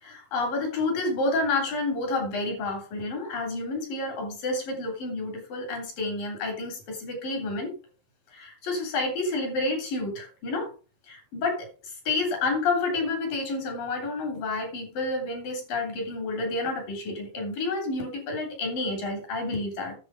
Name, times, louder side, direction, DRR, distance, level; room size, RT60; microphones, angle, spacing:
voice 1, 0.0-7.7 8.3-10.7 11.1-20.0, left 3 dB, 65° left, 4 dB, 5.1 m, -29 dB
10.0 x 7.6 x 5.0 m, 0.35 s
omnidirectional pair, 4.2 m